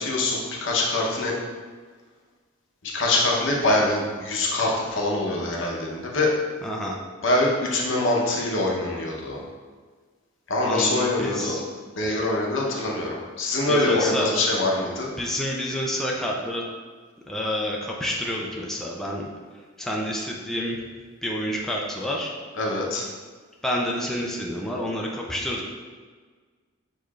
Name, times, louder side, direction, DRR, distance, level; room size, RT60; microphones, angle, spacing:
voice 1, 0.0-1.3 2.9-6.3 7.2-9.4 10.5-11.5 12.0-15.1 22.5-23.0, left 2 dB, 70° left, -2 dB, 0.8 m, -24 dB
voice 2, 6.6-6.9 10.6-11.6 13.7-14.3 15.2-16.6 17.3-19.2 19.8-20.8 21.2-22.3 23.6-25.7, equal, ahead, -3 dB, 0.4 m, -28 dB
6.5 x 3.1 x 2.4 m, 1.5 s
head